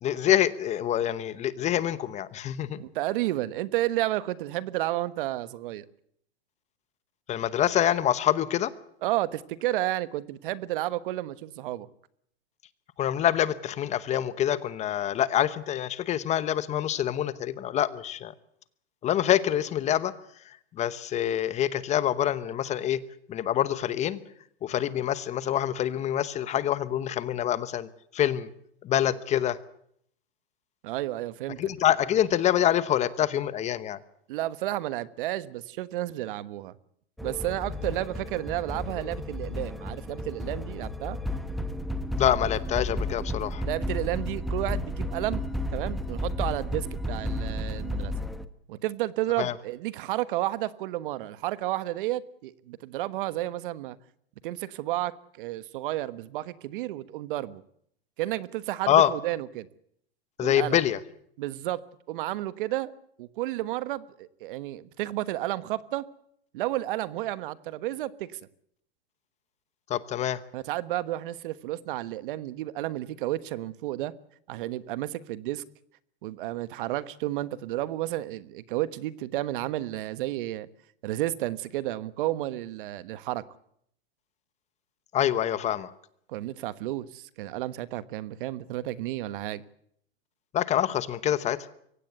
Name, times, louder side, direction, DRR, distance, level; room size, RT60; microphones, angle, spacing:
voice 1, 0.0-2.8 7.3-8.7 13.0-18.3 19.0-20.1 20.8-23.0 23.3-24.2 24.6-28.5 28.8-29.6 31.6-34.0 42.1-43.6 49.4-49.5 58.9-59.1 60.4-61.0 69.9-70.4 85.1-85.9 90.5-91.7, left 11 dB, 20° left, 0.9 m, -26 dB
voice 2, 2.8-5.8 9.0-11.9 30.8-31.7 34.3-36.7 37.2-41.2 43.6-45.4 45.7-48.1 48.7-54.0 54.4-55.1 55.4-57.6 58.2-59.7 60.4-60.8 61.4-61.8 62.1-62.9 63.2-66.0 66.5-68.4 70.5-74.1 74.5-75.6 76.2-80.7 81.0-83.4 86.3-89.6, right 15 dB, 55° right, 1.4 m, -31 dB
sound 1, 37.2-48.5, left 1 dB, ahead, 1.0 m, -32 dB
23.5 x 17.0 x 8.1 m
supercardioid pair, 145°, 31 cm